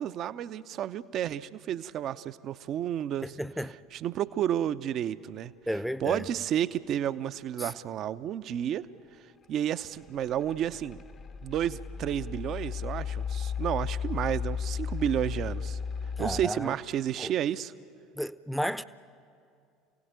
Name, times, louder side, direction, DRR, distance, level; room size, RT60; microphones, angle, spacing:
voice 1, 0.0-3.4 3.9-5.5 6.0-8.9 9.5-11.0 11.4-15.8 16.2-17.7, right 10 dB, 50° right, 0.7 m, -31 dB
voice 2, 3.4-3.7 5.7-6.3 7.6-7.7 16.2-16.7 17.2-17.3 18.2-18.8, equal, ahead, 0.8 m, -32 dB
sound 1, 10.1-16.5, left 6 dB, 35° left, 0.9 m, -35 dB
28.0 x 17.5 x 9.1 m
figure-of-eight pair, 65°, 0 cm